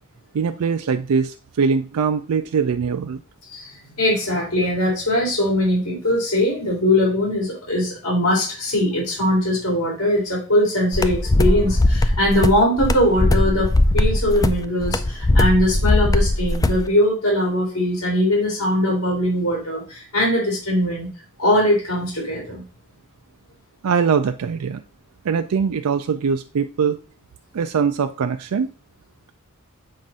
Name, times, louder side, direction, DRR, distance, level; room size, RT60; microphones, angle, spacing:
voice 1, 0.3-3.2 23.8-24.8 25.2-27.0 27.5-28.7, right 6 dB, 80° right, 7 dB, 0.4 m, -22 dB
voice 2, 4.0-21.1 21.4-22.6, left 1 dB, 85° left, -3 dB, 3.2 m, -21 dB
sound 1, 10.9-16.8, left 1 dB, 15° left, 0.3 m, -19 dB
7.5 x 2.6 x 5.3 m, 0.37 s
head